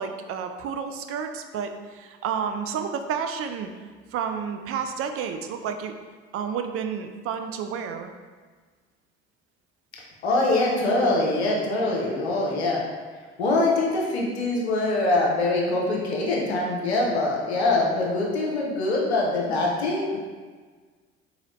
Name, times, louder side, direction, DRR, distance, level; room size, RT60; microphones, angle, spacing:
voice 1, 0.0-3.7 4.1-5.9 6.3-8.1, right 7 dB, 45° right, 6 dB, 0.4 m, -30 dB
voice 2, 10.2-12.8 13.4-20.2, left 2 dB, 90° left, -2 dB, 0.7 m, -23 dB
3.9 x 2.9 x 3.1 m, 1.5 s
hypercardioid pair, 60°, 32 cm